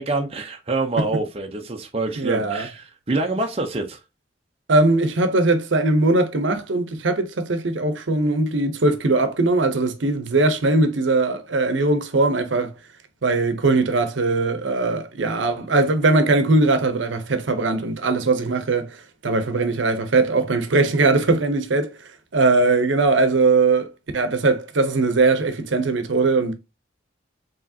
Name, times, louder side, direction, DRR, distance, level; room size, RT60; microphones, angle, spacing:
voice 1, 0.0-4.0, right 2 dB, 30° right, 0.6 m, -26 dB
voice 2, 2.2-2.7 4.7-12.7 13.2-26.5, right 3 dB, 80° right, 0.7 m, -20 dB
4.9 x 3.1 x 2.7 m
head